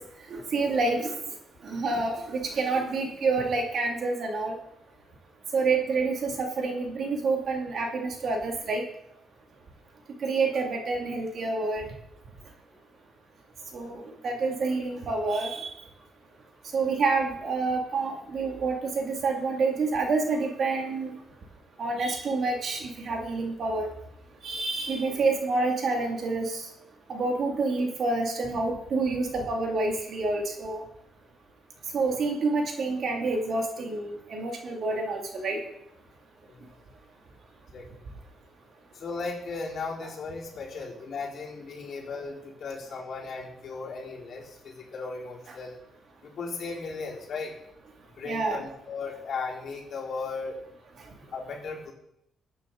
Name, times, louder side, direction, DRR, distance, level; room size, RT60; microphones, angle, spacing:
voice 1, 0.3-1.0 1.6-4.5 5.5-8.8 10.2-11.8 13.7-15.7 16.7-21.1 21.8-23.9 24.4-26.6 27.1-30.8 31.9-35.6 40.0-40.1 48.3-48.6, right 3 dB, 55° right, 2 dB, 2.4 m, -28 dB
voice 2, 38.9-45.8 46.2-47.5 48.2-50.6 51.3-51.9, left 4 dB, 60° left, -4 dB, 4.2 m, -36 dB
15.5 x 8.9 x 3.9 m, 0.78 s
cardioid pair, 90°, 0 cm